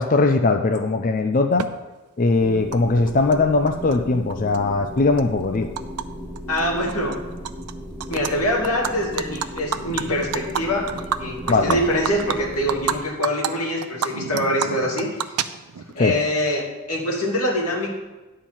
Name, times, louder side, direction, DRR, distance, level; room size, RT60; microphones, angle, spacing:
voice 1, 0.0-1.7 2.2-5.7 11.5-11.8 16.0-16.2, left 3 dB, 35° left, 4 dB, 0.4 m, -20 dB
Animal, 1.6-1.7 2.7-2.8 3.1-4.0 4.3-6.0 6.4-6.6 6.9-7.7 8.0-8.3 8.6-13.0 13.2-13.5 13.8-15.9, right 8 dB, 90° right, 0.5 m, -28 dB
sound 1, 2.4-13.0, equal, 10° left, 0.8 m, -36 dB
voice 2, 6.5-7.2 8.1-10.9 11.2-15.4 15.9-17.9, left 1 dB, 90° left, -2 dB, 2.4 m, -24 dB
10.5 x 4.5 x 7.2 m, 1.1 s
head